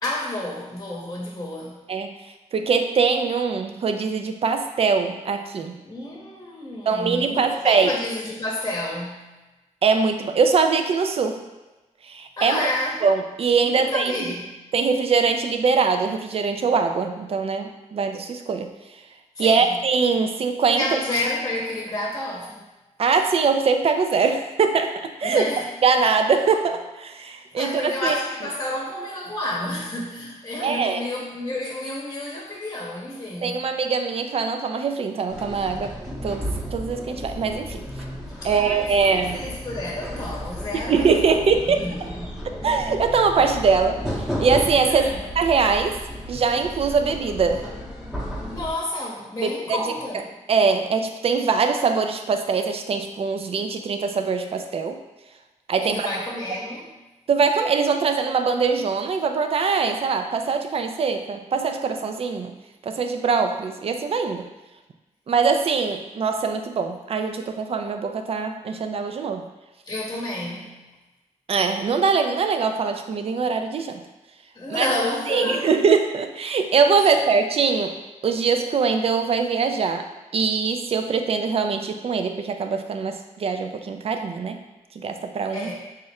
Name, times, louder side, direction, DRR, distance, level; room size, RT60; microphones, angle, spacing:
voice 1, 0.0-1.8 5.8-9.3 12.4-13.0 13.6-14.5 19.3-19.7 20.8-22.6 25.2-25.7 27.6-33.7 38.4-41.4 41.7-42.5 44.9-45.2 48.5-50.3 55.8-56.9 69.9-70.8 74.5-75.7 77.0-77.2 85.5-85.7, left 1 dB, 25° left, -3 dB, 0.9 m, -30 dB
voice 2, 2.5-5.7 6.9-7.9 9.8-11.4 12.0-12.7 13.0-14.3 14.7-18.7 19.4-20.8 23.0-24.9 25.2-25.4 25.8-28.2 30.6-31.0 33.4-37.9 38.4-39.5 40.9-41.8 42.6-46.0 46.3-47.7 49.4-49.8 50.5-55.0 55.7-56.1 57.3-62.5 62.8-64.4 65.3-69.4 71.5-74.0 74.7-74.9 75.3-77.9 78.2-84.6 85.0-85.7, right 5 dB, 50° right, 6 dB, 0.4 m, -22 dB
sound 1, 35.3-48.7, equal, ahead, 0.8 m, -33 dB
3.7 x 2.1 x 4.1 m, 1.1 s
cardioid pair, 75°, 13 cm